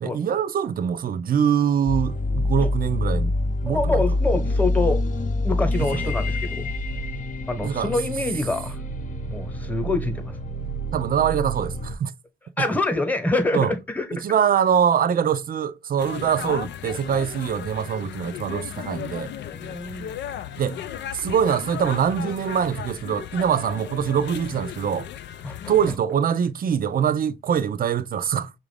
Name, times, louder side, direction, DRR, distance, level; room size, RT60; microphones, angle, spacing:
voice 1, 0.0-3.3 3.6-4.0 5.8-6.1 7.6-7.9 10.9-12.1 13.5-13.7 14.1-19.3 20.6-20.8 21.1-25.1 25.7-28.5, right 8 dB, 45° right, 0.5 m, -23 dB
sound 1, 1.9-11.9, left 1 dB, 40° left, 0.8 m, -26 dB
voice 2, 3.7-5.0 5.4-6.7 7.5-8.8 9.3-10.4 12.6-14.2 19.3-20.1 25.4-25.7, left 2 dB, 10° left, 1.1 m, -26 dB
sound 2, 16.0-26.0, left 10 dB, 65° left, 0.4 m, -36 dB
6.0 x 2.5 x 3.3 m
cardioid pair, 90°, 20 cm